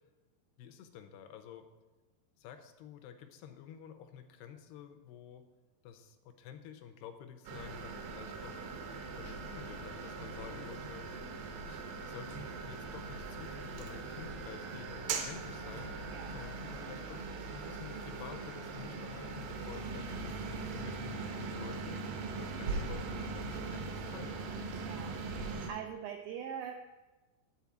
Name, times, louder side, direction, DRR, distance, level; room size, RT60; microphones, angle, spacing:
voice 1, 0.6-1.7 2.4-5.5 5.8-8.7 9.2-11.1 11.7-15.9 16.3-17.2 17.6-24.4, left 8 dB, 85° left, 7 dB, 2.6 m, -50 dB
sound 1, 7.5-25.7, right 4 dB, 75° right, 2.2 m, -40 dB
voice 2, 24.9-26.7, right 8 dB, 90° right, 3 dB, 2.1 m, -43 dB
10.5 x 4.2 x 7.1 m, 1.1 s
omnidirectional pair, 4.9 m